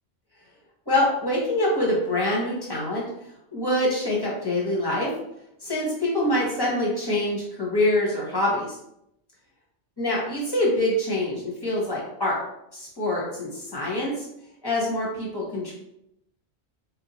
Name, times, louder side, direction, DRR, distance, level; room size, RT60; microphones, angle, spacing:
voice 1, 0.9-3.0 3.5-5.1 5.6-8.7 10.0-12.4 12.7-14.3 14.6-15.7, left 1 dB, 20° left, -4 dB, 1.1 m, -25 dB
4.0 x 2.8 x 2.9 m, 0.79 s
omnidirectional pair, 1.1 m